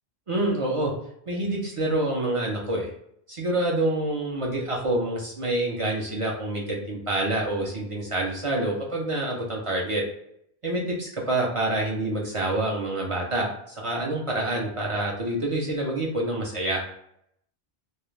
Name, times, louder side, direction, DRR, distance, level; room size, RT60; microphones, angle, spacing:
voice 1, 0.3-0.9 1.3-2.9 3.3-10.0 10.6-16.8, right 1 dB, 50° right, -2 dB, 0.4 m, -27 dB
2.3 x 2.1 x 3.0 m, 0.73 s
omnidirectional pair, 1.0 m